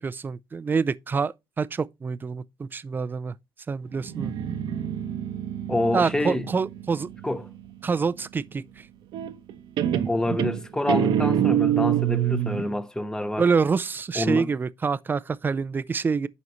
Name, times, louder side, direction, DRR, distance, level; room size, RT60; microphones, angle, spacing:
voice 1, 0.0-3.3 3.7-4.3 5.9-7.1 7.8-8.9 13.4-16.3, right 5 dB, 25° right, 0.4 m, -26 dB
Guitar, 4.0-7.6 9.1-9.5 9.8-12.7, right 10 dB, 70° right, 0.9 m, -26 dB
voice 2, 5.7-6.5 7.2-7.4 10.1-13.5 14.1-14.5, left 1 dB, 10° left, 0.8 m, -27 dB
10.5 x 4.1 x 3.0 m
cardioid pair, 105°, 8 cm